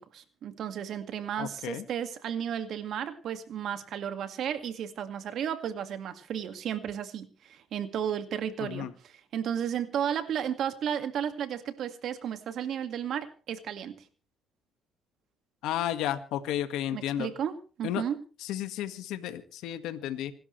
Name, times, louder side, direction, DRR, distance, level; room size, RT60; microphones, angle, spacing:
voice 1, 0.0-13.9 16.9-18.2, right 9 dB, 65° right, 9 dB, 2.0 m, -33 dB
voice 2, 1.4-1.8 8.6-8.9 15.6-17.3 17.8-18.0 18.4-20.3, left 11 dB, 80° left, 9 dB, 1.8 m, -33 dB
27.5 x 12.5 x 3.3 m, 0.37 s
cardioid pair, 95°, 0 cm